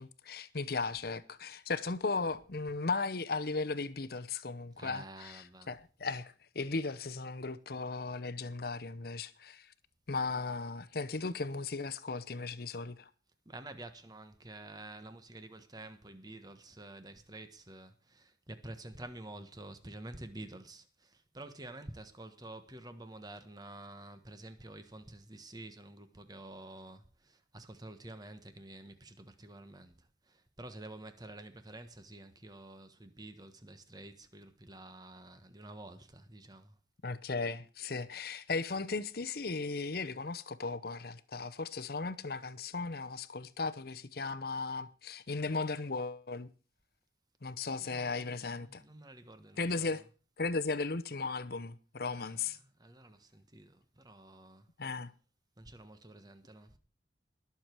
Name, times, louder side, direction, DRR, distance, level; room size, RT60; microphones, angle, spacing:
voice 1, 0.0-9.7 10.1-13.1 37.0-46.5 47.4-48.8 49.6-50.0 50.4-52.6 54.8-55.1, left 4 dB, 60° left, 0.8 m, -36 dB
voice 2, 4.7-5.7 13.4-36.8 47.8-50.0 52.1-54.7 55.6-56.8, right 1 dB, 20° right, 1.3 m, -49 dB
20.0 x 7.1 x 4.6 m
head